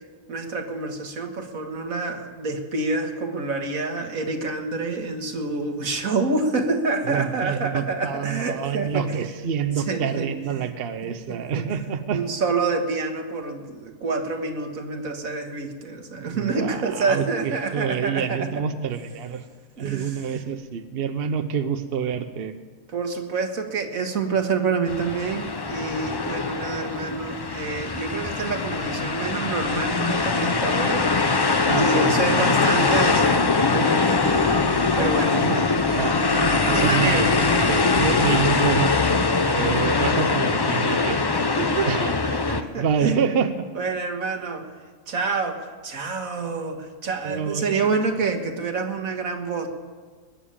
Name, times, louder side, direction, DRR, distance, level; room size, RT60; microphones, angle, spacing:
voice 1, 0.3-9.2 9.8-10.7 11.0-11.7 12.1-18.5 19.8-20.2 22.9-31.1 31.7-34.7 35.0-35.4 35.8-35.9 36.7-37.6 41.3-44.7 45.1-49.7, right 4 dB, 90° right, 4 dB, 2.0 m, -27 dB
voice 2, 7.1-12.2 16.2-19.4 19.8-22.5 31.7-32.8 35.3-35.6 35.9-41.2 41.9-42.1 42.8-43.5 47.2-47.9, right 7 dB, 50° right, 9 dB, 1.0 m, -27 dB
sound 1, 24.9-42.6, left 4 dB, 35° left, 0.3 m, -22 dB
21.0 x 7.3 x 8.8 m, 1.4 s
omnidirectional pair, 1.4 m